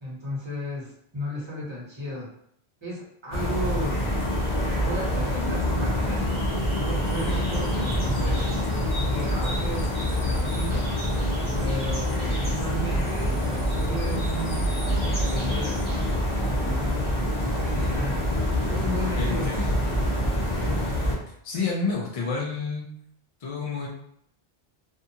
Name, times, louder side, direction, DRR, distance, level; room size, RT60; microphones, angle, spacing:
voice 1, 0.0-2.3 2.8-4.0 4.8-6.2 6.9-8.5 8.9-9.9 10.2-10.8 11.6-15.8 16.7-17.1 17.4-18.2 18.6-19.5 20.4-20.8 21.5-22.0 22.4-22.5, equal, 25° right, -7 dB, 1.1 m, -34 dB
sound 1, 3.3-21.1, equal, 30° left, 0.9 m, -26 dB
voice 2, 19.1-19.7 21.4-22.9 23.4-23.9, left 4 dB, 50° left, -2 dB, 0.4 m, -29 dB
2.6 x 2.3 x 2.7 m, 0.70 s
omnidirectional pair, 1.1 m